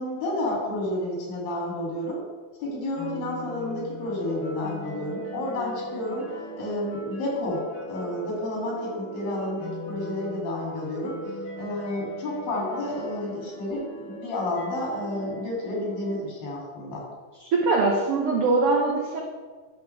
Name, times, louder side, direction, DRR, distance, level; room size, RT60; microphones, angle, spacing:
voice 1, 0.0-2.2 2.6-6.3 6.6-11.2 11.6-17.0, left 1 dB, 90° left, -4 dB, 4.3 m, -31 dB
sound 1, 3.0-16.2, equal, 60° left, 3.4 m, -38 dB
voice 2, 17.5-19.2, right 3 dB, 75° right, -1 dB, 1.3 m, -22 dB
11.0 x 6.9 x 3.3 m, 1.4 s
omnidirectional pair, 3.9 m